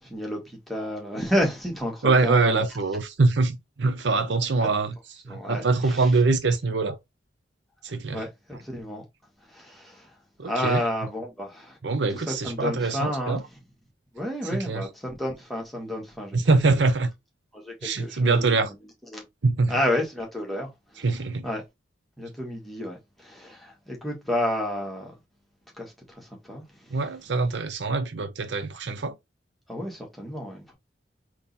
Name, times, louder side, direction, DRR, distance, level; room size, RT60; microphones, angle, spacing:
voice 1, 0.0-2.7 5.3-6.1 8.1-9.1 9.5-10.1 10.4-11.8 12.3-13.4 14.1-16.4 17.5-18.7 19.1-19.2 19.7-21.0 21.4-21.6 22.2-25.1 25.8-27.0 29.7-30.7, left 1 dB, ahead, 1.5 m, -31 dB
voice 2, 2.0-4.9 5.3-7.0 7.8-8.2 10.4-10.8 11.8-13.4 14.5-14.9 16.3-17.1 17.8-18.7 19.4-19.7 21.0-21.5 26.9-29.2, right 3 dB, 70° right, 0.7 m, -23 dB
3.7 x 3.0 x 4.0 m
head